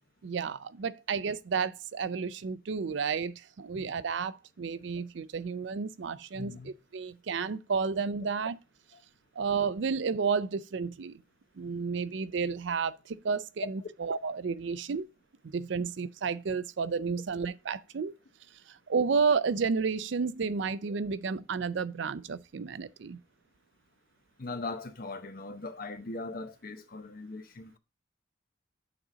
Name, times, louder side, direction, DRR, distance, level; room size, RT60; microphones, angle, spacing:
voice 1, 0.2-8.6 9.4-11.2 11.6-15.1 15.5-18.1 18.7-23.2, right 5 dB, 60° right, 0.4 m, -31 dB
voice 2, 6.3-6.7 24.4-27.8, left 3 dB, 45° left, 0.8 m, -40 dB
8.9 x 3.9 x 4.9 m
head